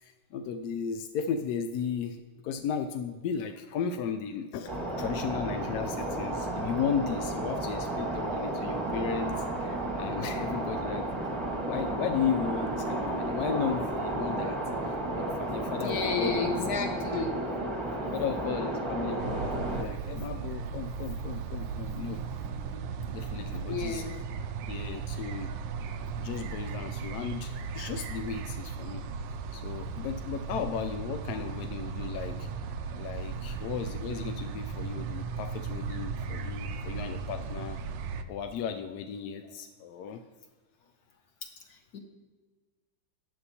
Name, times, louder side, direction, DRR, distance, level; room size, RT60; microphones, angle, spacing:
voice 1, 0.0-11.4 11.7-16.8 17.1-17.2 18.0-22.4 23.1-24.0 24.7-25.5 26.2-29.0 29.5-32.5 32.9-37.8 38.3-40.2, left 7 dB, 75° left, 6 dB, 0.9 m, -35 dB
sound 1, 4.7-19.8, right 1 dB, 20° right, 1.0 m, -32 dB
voice 2, 15.8-17.4 22.7-22.8 23.7-24.2 41.7-42.0, left 5 dB, 55° left, 4 dB, 1.6 m, -32 dB
sound 2, 19.2-38.2, right 5 dB, 75° right, 1.2 m, -36 dB
14.0 x 9.3 x 2.9 m, 1.4 s
omnidirectional pair, 2.1 m